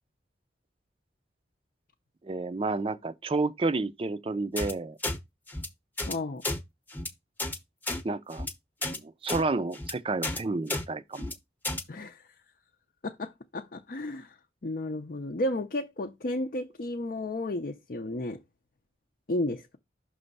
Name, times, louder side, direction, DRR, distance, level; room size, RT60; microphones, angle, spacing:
voice 1, 2.2-5.0 8.0-8.5 8.9-11.3, right 3 dB, 30° right, 0.4 m, -30 dB
sound 1, 4.6-4.7 5.0-5.2 5.5-5.7 6.0-6.1 6.4-6.6 6.9-7.1 7.4-7.6 7.8-8.0 8.3-8.5 8.8-9.0 9.3-9.4 9.7-9.9 10.2-10.4 10.7-10.8 11.1-11.3 11.6-11.8, left 2 dB, 10° left, 0.8 m, -32 dB
voice 2, 6.1-6.4 11.9-12.2 13.0-14.4 14.6-18.4 19.3-19.8, left 1 dB, 50° left, 0.6 m, -33 dB
6.1 x 3.3 x 5.3 m
head